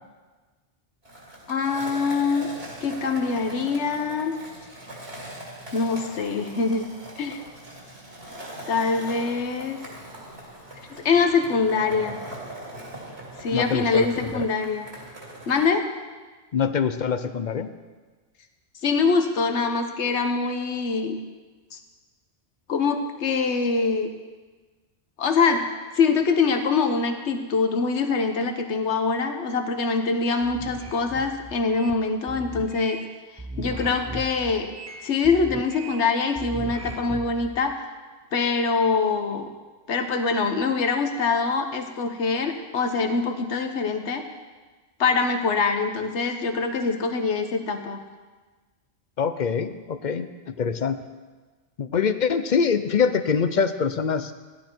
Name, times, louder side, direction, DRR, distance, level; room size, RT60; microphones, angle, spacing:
Skateboard, 1.0-15.7, right 1 dB, 65° right, 3.0 m, -41 dB
voice 1, 1.5-2.5 2.8-4.3 5.7-6.9 7.2-7.4 8.7-9.8 10.9-12.2 13.4-14.9 15.5-15.9 18.8-21.2 21.7-21.8 22.7-24.1 25.2-25.6 25.9-33.0 33.6-34.7 35.0-37.8 38.3-39.5 39.9-44.3 45.0-48.0, left 4 dB, 80° left, 6 dB, 1.3 m, -24 dB
voice 2, 13.5-14.1 14.3-14.5 16.5-17.7 49.2-51.0 51.8-54.3, left 6 dB, 50° left, 11 dB, 0.7 m, -24 dB
sound 1, 30.4-32.0 32.3-33.1 33.4-36.1 36.4-37.5, right 2 dB, 20° right, 0.5 m, -37 dB
16.0 x 11.5 x 4.6 m, 1.3 s
omnidirectional pair, 1.1 m